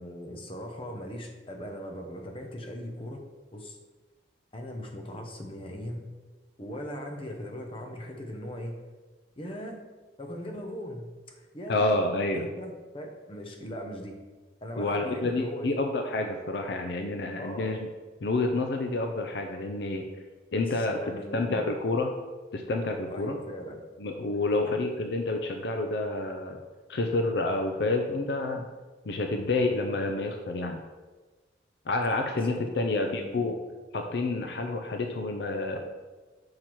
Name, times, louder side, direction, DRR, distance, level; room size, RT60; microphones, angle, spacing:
voice 1, 0.0-3.3 3.5-3.8 4.5-6.1 6.6-8.8 9.4-9.8 10.2-11.9 12.3-14.2 14.6-15.8 17.4-17.7 20.6-21.7 23.1-23.8 24.5-24.8 32.3-33.5 35.7-35.8, equal, 30° left, 3 dB, 0.8 m, -39 dB
voice 2, 11.7-12.5 14.8-17.9 18.2-20.1 20.5-22.1 22.5-23.4 24.0-26.6 26.9-28.7 29.1-30.8 31.9-33.6 33.9-35.8, left 2 dB, 60° left, 4 dB, 0.5 m, -29 dB
5.8 x 4.7 x 4.5 m, 1.3 s
head